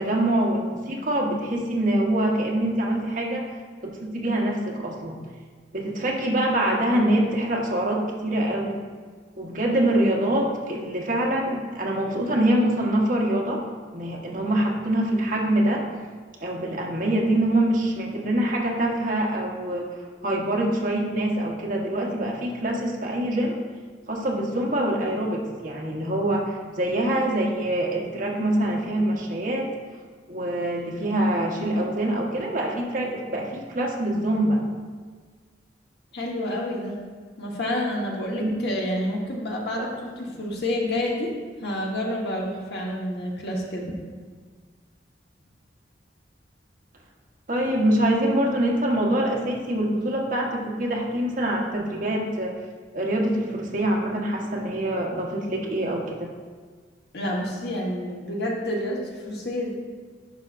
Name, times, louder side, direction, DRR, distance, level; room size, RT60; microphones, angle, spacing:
voice 1, 0.0-3.4 3.8-5.2 5.7-8.8 9.4-13.6 13.9-15.8 16.4-19.9 20.2-23.6 24.1-29.7 30.3-34.6 38.4-38.5 39.8-39.9 47.5-52.5 52.9-56.3, right 1 dB, 50° right, -2 dB, 1.2 m, -24 dB
voice 2, 36.1-37.0 37.4-41.3 41.6-43.9 57.1-59.7, left 1 dB, 65° left, -2 dB, 1.3 m, -29 dB
10.5 x 5.6 x 2.5 m, 1.6 s
head